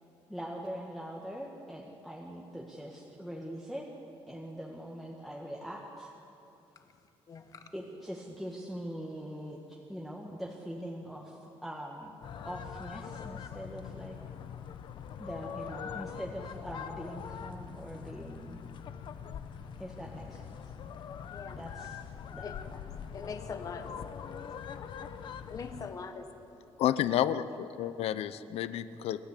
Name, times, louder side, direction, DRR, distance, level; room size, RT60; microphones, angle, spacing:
voice 1, 0.3-3.9 4.3-6.1 7.7-11.3 11.6-12.1 12.4-14.2 15.2-18.6 19.8-20.5 21.5-22.5, equal, ahead, -3 dB, 1.6 m, -42 dB
sound 1, 12.2-25.9, left 7 dB, 50° left, 1.0 m, -43 dB
voice 2, 22.4-22.8 23.1-23.9 25.5-26.3, left 5 dB, 35° left, 7 dB, 1.5 m, -41 dB
voice 3, 26.8-29.2, left 11 dB, 75° left, 14 dB, 0.8 m, -30 dB
28.5 x 13.5 x 8.4 m, 2.8 s
cardioid pair, 170°, 10 cm